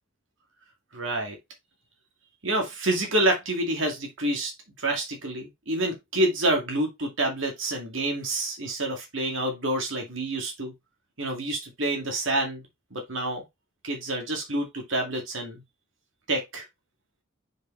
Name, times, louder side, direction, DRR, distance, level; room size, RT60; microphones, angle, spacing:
voice 1, 0.9-1.4 2.4-4.5 4.8-10.7 11.2-12.6 12.9-13.4 13.8-15.6 16.3-16.6, right 1 dB, 70° right, 2.1 m, -28 dB
6.3 x 5.0 x 3.2 m
head